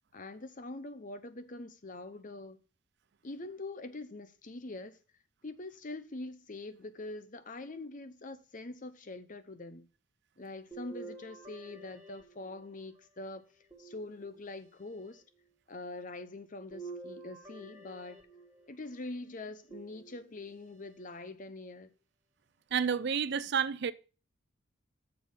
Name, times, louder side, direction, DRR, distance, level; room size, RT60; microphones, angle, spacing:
voice 1, 0.1-2.6 3.2-5.0 5.4-9.9 10.4-13.4 13.8-15.2 15.7-18.2 18.7-21.9, left 2 dB, 40° left, 0.8 m, -44 dB
sound 1, 10.7-13.0 13.7-14.7 16.7-18.8 19.7-20.6 21.2-21.3 22.7-22.8, right 3 dB, 15° right, 1.5 m, -49 dB
voice 2, 22.7-23.9, right 7 dB, 55° right, 0.4 m, -30 dB
6.9 x 6.3 x 5.4 m
head